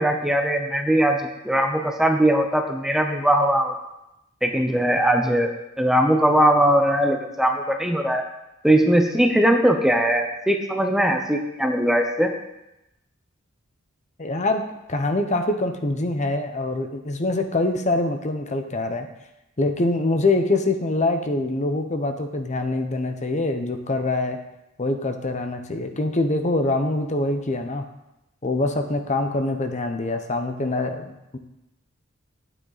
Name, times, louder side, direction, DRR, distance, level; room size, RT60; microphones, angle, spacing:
voice 1, 0.0-3.7 4.4-5.5 5.8-8.2 8.6-12.3, right 1 dB, ahead, 3 dB, 0.7 m, -20 dB
voice 2, 14.2-14.6 14.9-19.1 19.6-24.4 24.8-27.8 28.4-31.1 31.3-31.4, left 2 dB, 35° left, 6 dB, 0.8 m, -24 dB
10.5 x 9.2 x 4.1 m, 0.90 s
head